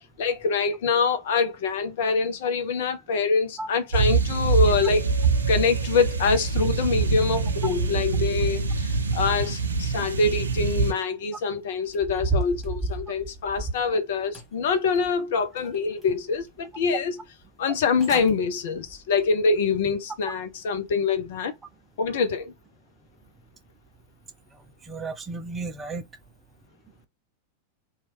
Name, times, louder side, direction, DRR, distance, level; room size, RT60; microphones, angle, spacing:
voice 1, 0.2-5.1 5.5-17.2 17.6-21.5 22.0-22.5, left 4 dB, 55° left, 0.6 m, -25 dB
sound 1, 3.9-10.9, right 4 dB, 75° right, 0.5 m, -25 dB
sound 2, 11.9-13.9 14.3-15.2 15.6-16.4 16.8-16.9 17.7-17.8 18.0-18.3 18.8-19.0 19.5-19.6, right 3 dB, ahead, 1.6 m, -32 dB
voice 2, 24.9-26.0, right 3 dB, 15° right, 0.5 m, -33 dB
2.9 x 2.3 x 3.1 m
figure-of-eight pair, 90°, 0 cm